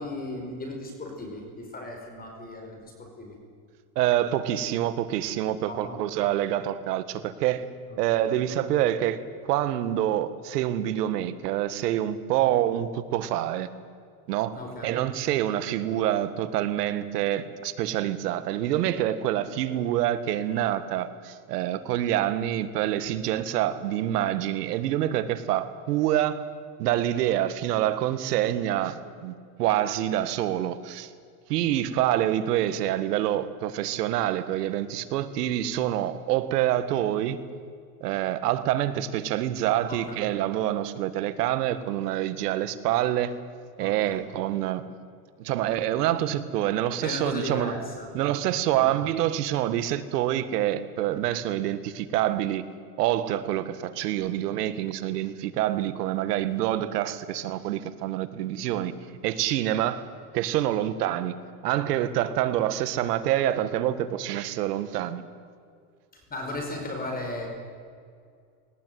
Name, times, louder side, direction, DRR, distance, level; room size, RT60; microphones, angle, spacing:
voice 1, 0.0-3.3 5.7-6.0 7.9-8.4 12.4-12.5 14.5-15.0 39.9-40.3 43.8-44.2 47.0-48.1 48.8-48.9 66.3-67.5, left 2 dB, 20° left, 2 dB, 5.0 m, -36 dB
voice 2, 4.0-7.6 8.0-13.7 14.3-26.4 26.8-31.1 31.5-37.4 38.0-43.4 43.8-44.8 45.4-47.8 48.1-52.7 53.0-58.9 59.2-60.0 60.3-61.3 61.6-65.2, right 12 dB, 85° right, 12 dB, 1.7 m, -26 dB
21.0 x 19.0 x 9.4 m, 2.2 s
supercardioid pair, 135°, 46 cm